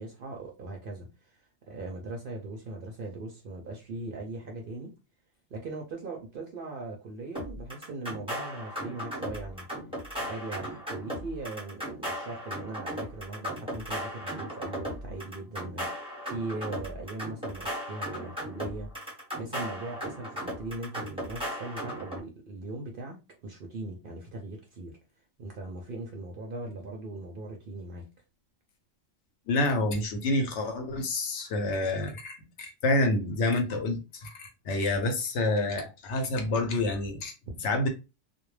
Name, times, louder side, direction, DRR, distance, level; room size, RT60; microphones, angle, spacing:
voice 1, 0.0-1.4 1.7-4.9 5.5-9.7 10.1-25.0 25.4-28.1 37.5-37.6, right 2 dB, 60° right, 0.6 m, -39 dB
sound 1, 7.3-22.2, equal, 5° right, 0.8 m, -37 dB
voice 2, 29.5-37.3 37.6-37.9, left 2 dB, 70° left, 0.9 m, -28 dB
2.3 x 2.1 x 3.1 m
omnidirectional pair, 1.3 m